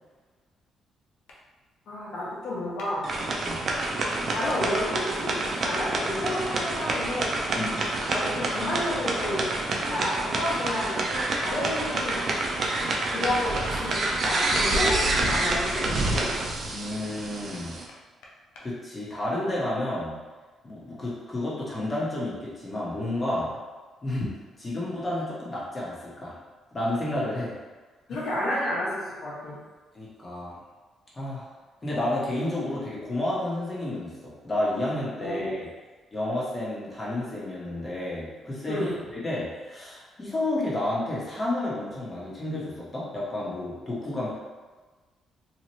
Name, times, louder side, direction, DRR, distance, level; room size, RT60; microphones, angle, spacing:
sound 1, 1.3-1.4 2.8-2.9 4.1-4.2 5.4-5.6 7.8-8.0 9.2-9.4 10.5-10.7 12.9-13.1 13.3-14.1 15.3-16.4 17.5-18.7, left 2 dB, 90° left, 0.5 m, -46 dB
voice 1, 1.9-3.0 4.2-7.3 8.1-12.2 13.1-16.3 28.1-29.6 35.2-35.5 38.7-39.0, left 1 dB, 70° left, -6 dB, 1.1 m, -31 dB
sound 2, 3.0-17.9, right 2 dB, 50° right, 0.5 m, -28 dB
voice 2, 16.6-17.8 18.6-20.2 20.6-23.6 24.0-24.3 24.6-26.3 26.7-27.5 28.1-28.2 29.9-30.6 31.1-31.5 31.8-35.7 36.1-44.3, left 1 dB, 30° left, -7 dB, 1.1 m, -31 dB
2.9 x 2.4 x 3.0 m, 1.3 s
cardioid pair, 90°, 0 cm